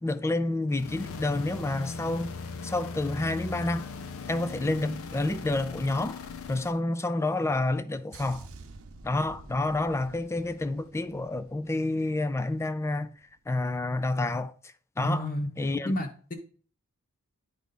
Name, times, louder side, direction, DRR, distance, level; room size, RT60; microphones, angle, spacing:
voice 1, 0.0-2.3 2.6-3.9 4.3-6.2 6.5-8.5 9.0-13.1 13.5-14.5 15.0-15.3 15.6-15.9, left 2 dB, 10° left, 0.3 m, -29 dB
sound 1, 0.7-6.8, left 4 dB, 65° left, 0.5 m, -39 dB
sound 2, 8.1-12.7 12.9-13.2, right 3 dB, 70° right, 0.8 m, -50 dB
voice 2, 15.0-15.5 15.8-16.3, left 1 dB, 40° left, 0.9 m, -30 dB
10.5 x 3.5 x 4.1 m
head